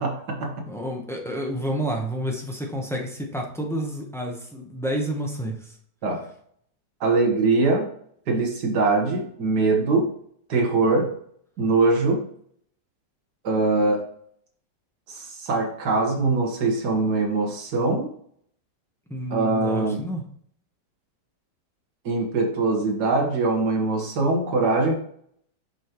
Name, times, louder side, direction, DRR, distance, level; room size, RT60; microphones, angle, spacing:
voice 1, 0.0-0.7 6.0-6.2 7.0-7.9 8.3-10.1 10.5-11.1 11.6-12.2 13.4-14.0 15.1-18.1 19.3-20.0 22.1-24.9, right 3 dB, 75° right, 2 dB, 1.9 m, -22 dB
voice 2, 0.7-5.7 19.1-20.2, equal, 5° left, 0 dB, 0.6 m, -29 dB
7.0 x 5.2 x 3.0 m, 0.63 s
omnidirectional pair, 1.8 m